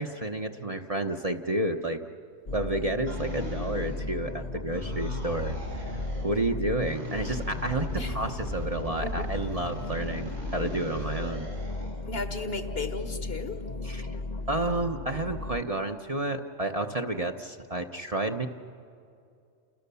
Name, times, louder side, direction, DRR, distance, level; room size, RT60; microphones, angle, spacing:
voice 1, 0.0-2.0 2.5-5.9 6.2-11.5 13.8-14.1 14.5-18.5, right 2 dB, 30° right, 4 dB, 1.0 m, -30 dB
sound 1, 2.5-15.6, left 2 dB, 40° left, 0.9 m, -36 dB
sound 2, 3.1-4.4 4.7-6.4 6.8-12.0, right 1 dB, 85° right, 7.3 m, -40 dB
voice 2, 12.1-13.6, left 3 dB, 55° left, 8 dB, 1.7 m, -35 dB
29.5 x 28.5 x 7.0 m, 2.4 s
omnidirectional pair, 1.3 m